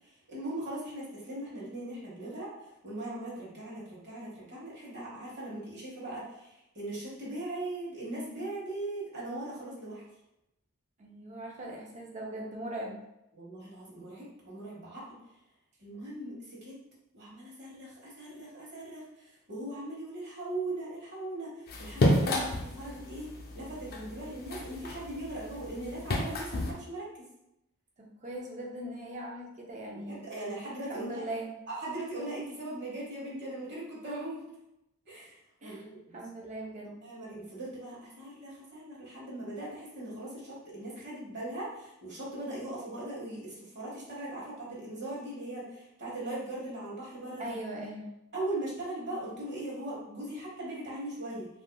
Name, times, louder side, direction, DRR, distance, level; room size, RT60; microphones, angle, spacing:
voice 1, 0.3-2.5 2.8-6.2 6.7-10.0 13.3-15.0 15.8-16.8 17.1-19.0 19.5-21.5 21.8-23.3 23.5-27.1 30.0-31.3 31.7-34.4 35.1-35.3 35.6-36.2 36.8-47.5 48.3-51.5, right 1 dB, 55° right, -6 dB, 1.1 m, -39 dB
voice 2, 11.0-13.0 28.0-30.2 30.9-31.5 35.6-35.8 36.1-37.0 47.4-48.1, right 1 dB, 35° right, -1 dB, 0.6 m, -40 dB
sound 1, 21.7-26.7, left 1 dB, 45° left, 0.5 m, -31 dB
3.3 x 2.7 x 2.2 m, 0.86 s
head